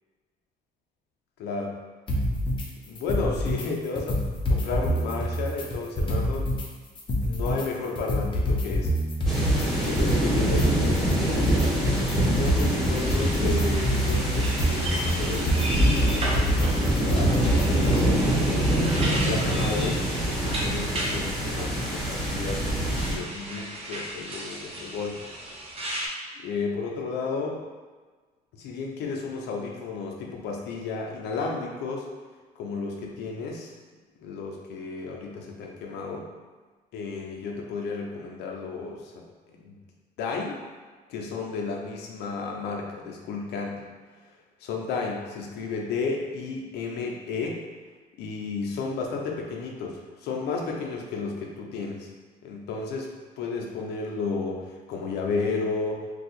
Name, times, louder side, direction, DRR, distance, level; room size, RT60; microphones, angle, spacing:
voice 1, 1.4-1.8 2.9-6.5 7.2-8.9 9.8-11.6 12.0-17.6 17.9-18.7 19.1-25.3 26.4-27.6 28.6-32.1 32.6-33.7 34.2-36.3 36.9-39.2 39.6-39.8 40.2-40.6 41.1-43.8 44.6-47.6 48.2-52.1 52.4-56.0, left 4 dB, 80° left, 0 dB, 0.6 m, -33 dB
sound 1, 2.1-2.7 3.0-3.7 4.0-6.7 7.0-18.1, equal, 30° left, 0.6 m, -26 dB
sound 2, 9.2-23.1, right 1 dB, ahead, 1.0 m, -25 dB
sound 3, 13.0-21.1 22.0-26.1, right 1 dB, 35° right, 0.8 m, -36 dB
2.7 x 2.3 x 4.1 m, 1.4 s
cardioid pair, 110°, 17 cm